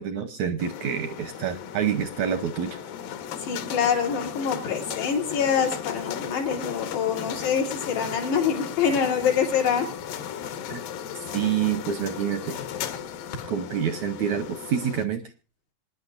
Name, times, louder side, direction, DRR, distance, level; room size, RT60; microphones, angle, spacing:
voice 1, 0.0-2.8 10.7-10.8 11.1-12.6 13.5-15.2, right 8 dB, 80° right, 9 dB, 1.6 m, -27 dB
sound 1, 0.6-15.0, left 9 dB, 70° left, 2.6 m, -36 dB
voice 2, 3.5-9.9, left 7 dB, 85° left, 0 dB, 5.3 m, -25 dB
26.0 x 10.5 x 2.6 m, 0.30 s
omnidirectional pair, 4.6 m